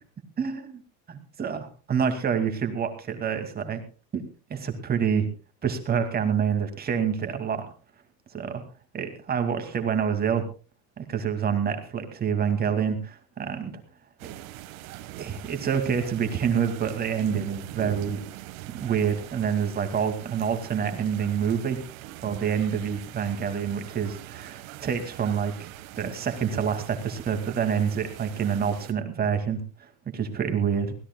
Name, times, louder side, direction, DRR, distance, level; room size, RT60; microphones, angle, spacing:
voice 1, 0.4-0.8 1.1-3.8 4.1-4.2 4.5-5.3 5.6-7.6 8.3-8.6 8.9-10.5 11.0-13.7 15.1-18.2 18.7-21.8 22.2-25.7 26.0-30.9, right 7 dB, 25° right, 7 dB, 2.3 m, -27 dB
sound 1, 14.2-28.9, right 14 dB, 90° right, 1.6 m, -42 dB
23.5 x 16.5 x 2.3 m, 0.35 s
cardioid pair, 160°, 40 cm